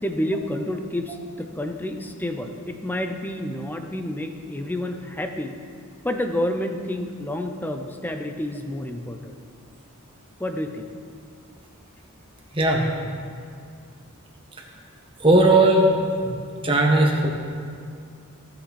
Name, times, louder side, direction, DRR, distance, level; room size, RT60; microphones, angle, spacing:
voice 1, 0.0-5.6 6.0-9.4 10.4-10.9, left 1 dB, 10° left, 5 dB, 0.6 m, -29 dB
voice 2, 12.5-12.8 15.2-15.9 16.2-16.3 16.6-17.3, right 2 dB, 25° right, -1 dB, 1.4 m, -17 dB
16.0 x 5.9 x 4.2 m, 2.3 s
head